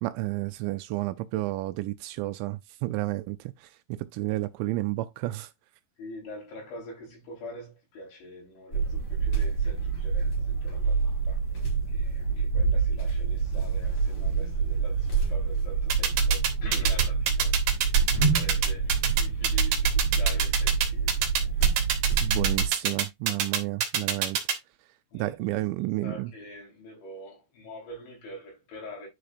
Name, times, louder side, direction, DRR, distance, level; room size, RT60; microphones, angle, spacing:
voice 1, 0.0-5.5 22.2-24.4 25.1-26.3, right 18 dB, 85° right, 2.7 m, -31 dB
voice 2, 6.0-11.4 11.9-17.6 18.3-21.2 21.6-21.7 25.1-29.1, left 1 dB, 70° left, 6.5 m, -45 dB
sound 1, 8.7-22.7, right 5 dB, 30° left, 3.5 m, -26 dB
sound 2, 15.9-24.5, right 8 dB, 60° right, 3.0 m, -25 dB
10.0 x 4.9 x 2.6 m
omnidirectional pair, 5.5 m